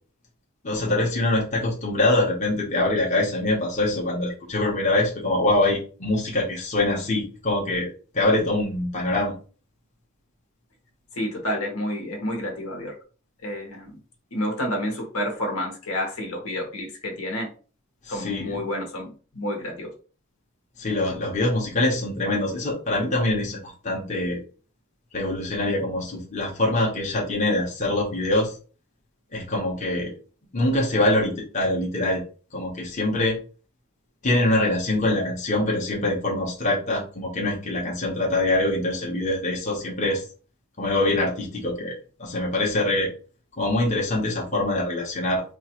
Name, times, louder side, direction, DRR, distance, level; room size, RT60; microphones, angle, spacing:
voice 1, 0.6-7.9 8.1-9.3 18.0-18.6 20.8-24.4 25.1-28.6 29.3-30.1 30.5-32.2 32.5-33.4 34.2-40.2 40.8-43.1 43.6-45.4, left 2 dB, 35° left, -3 dB, 0.9 m, -24 dB
voice 2, 11.1-12.9 13.4-13.9 14.3-17.5 18.1-19.9, left 1 dB, 80° left, 2 dB, 1.3 m, -29 dB
4.4 x 2.5 x 3.0 m, 0.38 s
head